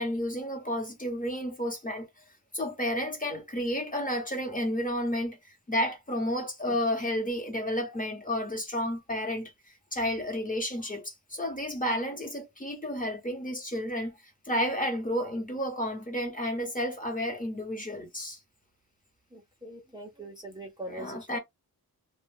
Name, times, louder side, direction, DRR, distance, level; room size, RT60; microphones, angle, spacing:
voice 1, 0.0-2.1 2.5-5.4 5.7-9.5 9.9-14.1 14.5-18.4 20.9-21.4, equal, 20° left, 1.1 m, -31 dB
voice 2, 19.3-21.4, right 1 dB, 10° right, 0.7 m, -42 dB
2.4 x 2.3 x 3.4 m
wide cardioid pair, 100°, 37 cm